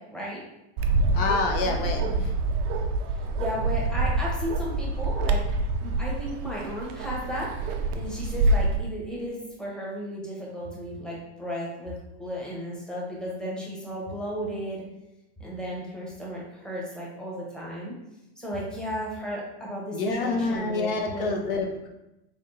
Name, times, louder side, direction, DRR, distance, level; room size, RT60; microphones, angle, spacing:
voice 1, 0.1-0.4 1.0-1.3 1.6-2.1 3.1-5.4 5.8-7.5 7.9-11.9 12.2-14.8 15.4-17.9 18.4-21.3, equal, ahead, -5 dB, 1.0 m, -34 dB
Bark, 0.8-8.8, right 2 dB, 35° right, 0.4 m, -26 dB
voice 2, 1.1-2.4 19.9-21.9, left 3 dB, 55° left, 2 dB, 0.7 m, -27 dB
3.8 x 3.4 x 2.7 m, 0.91 s
hypercardioid pair, 125°, 33 cm